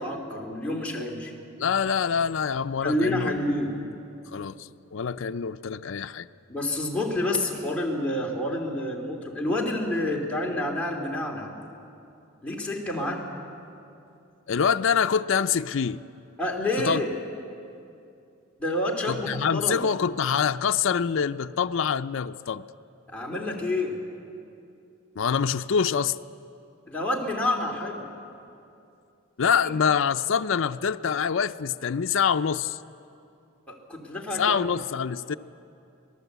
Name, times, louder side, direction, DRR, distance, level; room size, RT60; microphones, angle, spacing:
voice 1, 0.0-1.3 2.8-3.8 6.5-11.5 12.4-13.3 16.4-17.1 18.6-19.9 23.1-24.0 26.9-28.1 29.6-29.7 33.7-34.6, left 1 dB, 5° left, -2 dB, 2.8 m, -28 dB
voice 2, 1.6-3.3 4.3-6.3 14.5-16.0 16.8-17.0 19.1-22.6 25.2-26.2 29.4-32.8 34.4-35.3, left 6 dB, 65° left, 8 dB, 0.5 m, -25 dB
26.0 x 18.5 x 8.1 m, 2.6 s
head